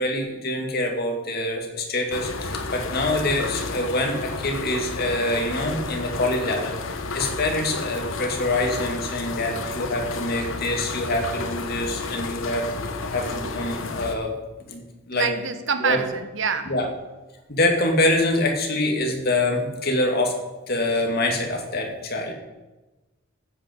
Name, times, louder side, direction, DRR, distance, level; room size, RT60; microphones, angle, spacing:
voice 1, 0.0-14.3 14.7-15.3 15.8-16.0 16.7-16.9 17.5-20.3 20.7-22.3, left 1 dB, 50° left, 2 dB, 2.3 m, -25 dB
sound 1, 2.1-14.2, left 3 dB, 75° left, 1.1 m, -31 dB
voice 2, 15.1-16.7, right 5 dB, 65° right, 9 dB, 1.1 m, -26 dB
14.5 x 8.4 x 5.3 m, 1.1 s
head